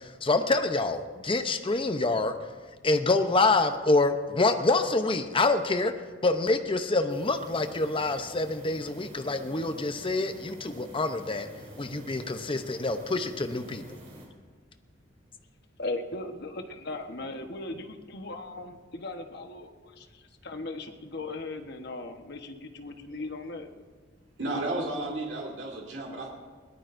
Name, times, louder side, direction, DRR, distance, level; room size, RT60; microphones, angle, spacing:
voice 1, 0.0-2.3 2.8-5.9 6.2-11.5 11.8-13.8, left 3 dB, 30° left, 8 dB, 0.7 m, -26 dB
sound 1, 7.1-14.3, right 1 dB, 35° right, 3.6 m, -48 dB
voice 2, 15.8-23.7, left 2 dB, 60° left, 5 dB, 1.2 m, -38 dB
voice 3, 24.4-26.3, right 2 dB, 75° right, -2 dB, 2.3 m, -32 dB
21.5 x 17.5 x 2.6 m, 1.5 s
head